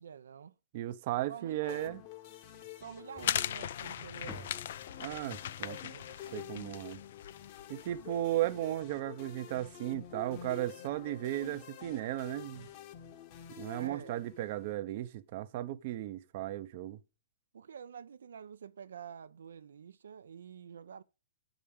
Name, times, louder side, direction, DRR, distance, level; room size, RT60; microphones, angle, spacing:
voice 1, 0.0-0.5 1.3-1.9 2.8-4.6 5.4-6.6 13.7-14.2 17.5-21.0, right 7 dB, 80° right, 0.6 m, -48 dB
voice 2, 0.7-2.0 5.0-5.8 6.3-7.0 7.7-12.7 13.6-17.0, right 14 dB, 40° right, 0.7 m, -35 dB
sound 1, 1.7-14.7, left 10 dB, 35° left, 1.1 m, -49 dB
sound 2, 3.2-8.2, left 10 dB, 55° left, 0.5 m, -39 dB
sound 3, 3.2-7.5, left 1 dB, 5° left, 0.5 m, -55 dB
9.0 x 5.0 x 7.1 m
hypercardioid pair, 160°, 0 cm